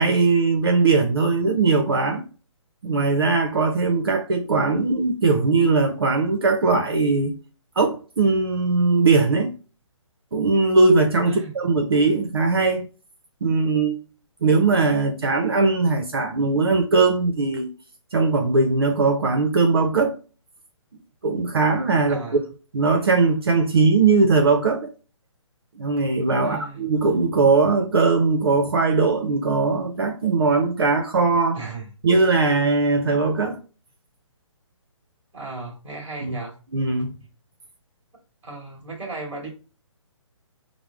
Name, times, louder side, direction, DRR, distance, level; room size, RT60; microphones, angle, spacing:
voice 1, 0.0-2.2 2.8-7.3 7.8-9.5 10.3-12.9 13.4-14.0 14.4-17.7 18.1-20.1 21.2-22.2 22.7-24.9 25.7-31.6 32.0-33.6 36.2-36.4 36.7-37.1, right 3 dB, 50° right, 0.6 m, -20 dB
voice 2, 11.2-11.6 22.1-22.4 26.4-26.9 31.5-31.9 35.3-36.5 38.4-39.5, right 3 dB, 5° right, 1.2 m, -35 dB
4.8 x 2.0 x 3.5 m
hypercardioid pair, 180°, 16 cm